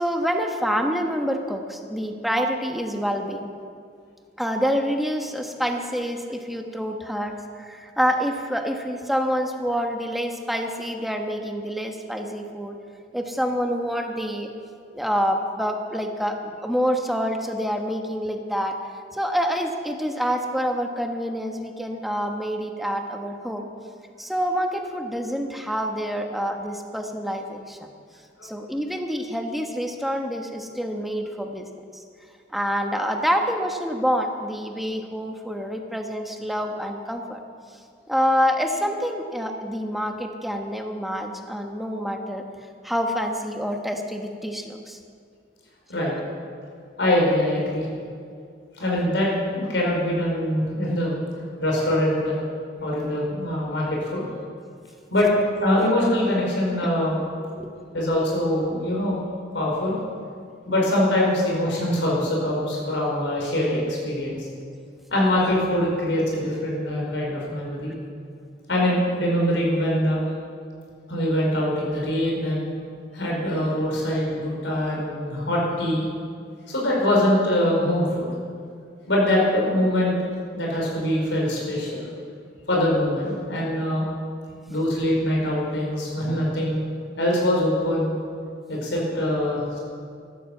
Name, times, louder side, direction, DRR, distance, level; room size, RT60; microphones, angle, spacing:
voice 1, 0.0-3.5 4.4-12.8 13.1-14.5 14.9-18.8 19.1-23.7 24.2-27.9 28.4-31.6 31.9-32.0 32.5-37.4 38.1-42.4 42.8-45.0 57.5-57.7, equal, ahead, 3 dB, 1.2 m, -27 dB
voice 2, 47.0-47.9 48.8-51.2 51.6-52.3 52.8-54.2 55.1-55.3 55.6-57.2 57.9-59.2 59.5-60.0 60.7-64.5 65.1-67.9 68.7-70.2 71.1-72.7 73.1-76.0 76.7-78.3 79.1-80.1 80.5-82.1 82.7-84.0 84.7-86.8 87.2-88.2 88.7-89.8, left 1 dB, 80° left, -3 dB, 4.9 m, -23 dB
14.5 x 12.5 x 7.3 m, 2.3 s
head